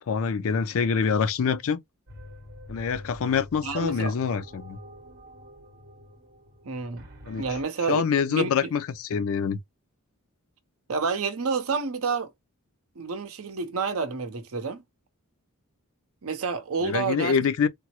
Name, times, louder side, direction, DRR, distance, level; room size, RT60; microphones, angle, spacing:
voice 1, 0.1-1.8 2.7-4.8 7.2-7.4 7.9-9.6 16.8-17.7, left 6 dB, 65° left, 0.4 m, -25 dB
sound 1, 2.1-7.6, left 1 dB, 50° right, 1.0 m, -46 dB
voice 2, 3.6-4.1 6.6-7.1 7.4-8.7 10.9-12.3 13.0-14.8 16.2-17.4, right 4 dB, 65° right, 0.7 m, -29 dB
3.5 x 2.0 x 2.8 m
head